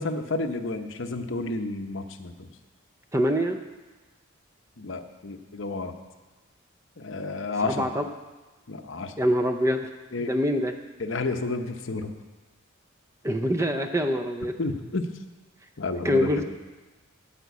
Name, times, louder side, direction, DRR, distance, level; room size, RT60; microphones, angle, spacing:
voice 1, 0.0-2.5 4.8-5.9 7.0-7.9 8.7-9.1 10.1-10.3 11.0-12.1 14.6-15.0 15.8-16.3, left 3 dB, 60° left, 7 dB, 0.8 m, -31 dB
voice 2, 3.1-3.6 7.7-8.0 9.2-9.9 10.2-10.7 13.2-14.6 16.0-16.4, equal, 15° right, 6 dB, 0.5 m, -24 dB
13.0 x 5.1 x 8.2 m, 1.2 s
head